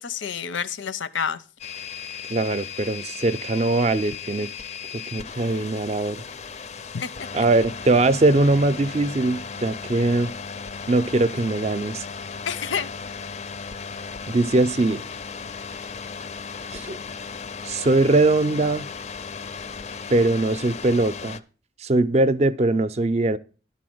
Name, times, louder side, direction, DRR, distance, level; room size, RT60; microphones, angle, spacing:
voice 1, 0.0-1.4 6.9-7.3 12.5-12.9, left 7 dB, 85° left, 0.6 m, -29 dB
sound 1, 1.6-21.4, left 6 dB, 35° left, 0.4 m, -36 dB
voice 2, 2.3-4.5 5.1-6.2 7.3-10.3 10.9-12.1 14.3-15.0 16.7-17.0 17.6-18.9 20.1-21.4 21.8-23.4, right 2 dB, 35° right, 0.4 m, -21 dB
11.5 x 4.2 x 7.7 m
head